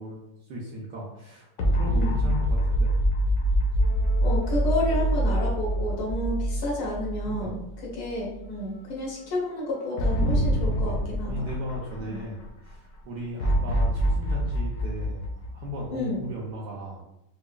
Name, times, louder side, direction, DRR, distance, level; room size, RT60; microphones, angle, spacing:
voice 1, 0.0-2.9 7.2-7.5 10.7-11.0 11.3-15.2 15.5-17.1, equal, 70° right, -4 dB, 1.0 m, -36 dB
sound 1, 1.6-7.9 8.3-8.4 10.0-12.4 13.4-16.2, equal, 65° left, 1.0 m, -25 dB
voice 2, 1.9-2.2 4.2-7.6 8.0-11.5 12.0-12.2 15.9-16.2, left 1 dB, 85° left, -3 dB, 1.9 m, -30 dB
sound 2, 3.8-7.8 8.3-9.9, left 5 dB, 45° left, 1.7 m, -47 dB
4.8 x 2.3 x 2.2 m, 0.83 s
omnidirectional pair, 2.3 m